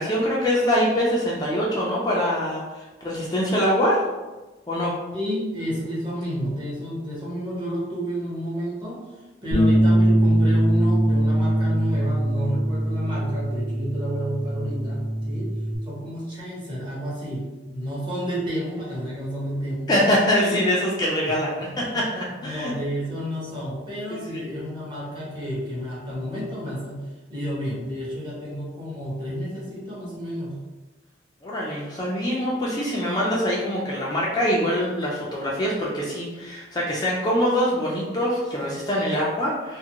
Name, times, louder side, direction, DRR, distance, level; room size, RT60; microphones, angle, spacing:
voice 1, 0.0-4.0 4.7-5.0 19.9-22.7 24.1-24.2 31.4-39.8, equal, 20° left, -5 dB, 0.4 m, -24 dB
voice 2, 5.1-9.0 9.4-15.5 15.8-19.9 20.4-20.7 21.2-27.0 27.3-30.6, equal, 25° right, -6 dB, 1.0 m, -31 dB
Bass guitar, 9.5-15.8, right 1 dB, 50° right, 0.9 m, -21 dB
2.5 x 2.5 x 2.9 m, 1.2 s
head